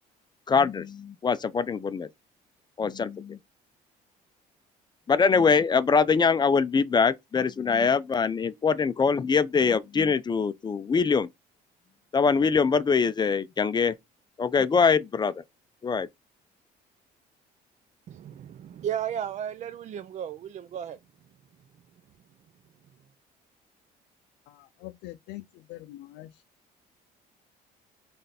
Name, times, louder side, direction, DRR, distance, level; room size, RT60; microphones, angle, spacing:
voice 1, 0.5-2.1 2.8-3.4 5.1-11.3 12.1-13.9 14.4-15.3 15.8-16.1, left 5 dB, 25° left, 0.5 m, -23 dB
voice 2, 18.1-21.0, right 9 dB, 45° right, 0.4 m, -34 dB
voice 3, 24.5-26.4, left 17 dB, 90° left, 0.5 m, -44 dB
3.9 x 3.3 x 4.1 m
cardioid pair, 110°, 17 cm